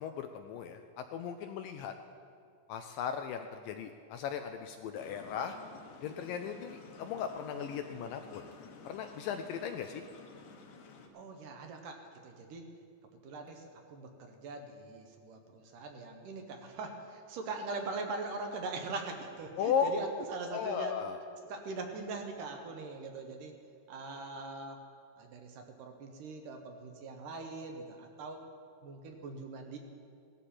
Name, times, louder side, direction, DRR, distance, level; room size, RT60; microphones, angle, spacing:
voice 1, 0.0-1.9 2.7-5.6 6.0-8.4 8.9-10.0 19.6-19.9 20.2-21.2, left 7 dB, 80° left, 7 dB, 2.0 m, -36 dB
sound 1, 4.9-11.1, left 4 dB, 65° left, 2.2 m, -52 dB
voice 2, 11.1-12.7 13.2-20.9 21.4-23.5 23.9-24.8 25.2-28.4 28.8-29.8, right 3 dB, 70° right, 4 dB, 2.4 m, -42 dB
17.5 x 12.5 x 4.3 m, 2.3 s
omnidirectional pair, 4.4 m